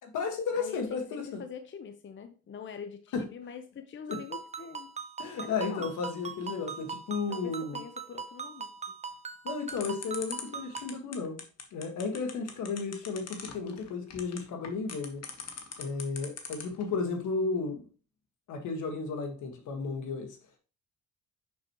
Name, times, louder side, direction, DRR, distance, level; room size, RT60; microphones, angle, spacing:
voice 1, 0.0-1.4 3.1-3.2 4.1-4.2 5.2-7.8 9.4-11.4 11.7-15.2 15.8-17.8 18.5-20.3, left 4 dB, 80° left, 5 dB, 1.7 m, -33 dB
voice 2, 0.5-4.9 5.4-5.9 7.3-8.7, left 6 dB, 40° left, 8 dB, 0.7 m, -44 dB
Ringtone, 4.1-11.0, right 5 dB, 25° right, 0.7 m, -41 dB
sound 1, 9.7-16.8, left 7 dB, 55° left, 1.4 m, -41 dB
6.2 x 6.1 x 3.0 m, 0.36 s
cardioid pair, 90°, 30 cm